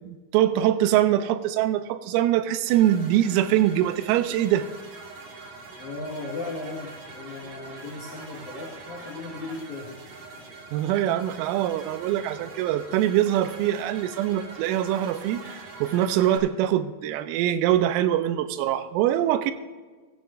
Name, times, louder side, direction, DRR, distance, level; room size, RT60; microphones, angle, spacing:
voice 1, 0.0-4.7 10.7-19.5, right 12 dB, 90° right, 11 dB, 3.3 m, -23 dB
sound 1, 2.7-16.4, right 3 dB, 60° right, 2.5 m, -43 dB
voice 2, 5.8-10.0 10.3-10.4, left 3 dB, 60° left, -5 dB, 2.1 m, -36 dB
15.0 x 14.5 x 2.5 m, 1.4 s
omnidirectional pair, 5.9 m